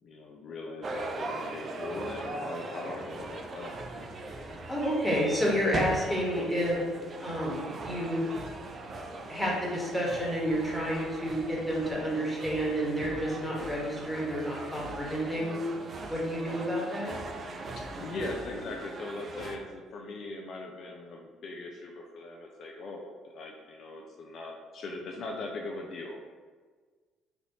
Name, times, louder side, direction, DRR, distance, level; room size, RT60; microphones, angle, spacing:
voice 1, 0.0-3.8 17.8-26.2, left 2 dB, 50° left, 0 dB, 0.3 m, -40 dB
sound 1, 0.8-19.6, right 2 dB, 40° right, 0.4 m, -40 dB
voice 2, 4.7-6.8 7.2-8.2 9.3-15.6 16.1-17.2, equal, ahead, -6 dB, 1.2 m, -30 dB
3.2 x 2.5 x 2.7 m, 1.5 s
figure-of-eight pair, 50°, 0 cm